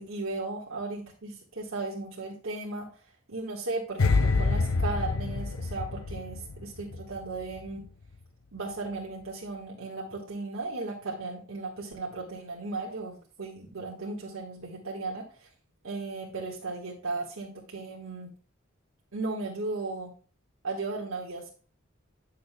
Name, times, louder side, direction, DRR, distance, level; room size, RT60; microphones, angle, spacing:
voice 1, 0.0-2.9 3.3-7.9 8.5-15.5 15.8-18.3 19.1-20.1 20.6-21.5, right 3 dB, 85° right, -2 dB, 1.5 m, -36 dB
sound 1, 4.0-7.2 7.4-7.7, left 3 dB, 85° left, 0.6 m, -27 dB
9.9 x 6.5 x 2.2 m, 0.39 s
head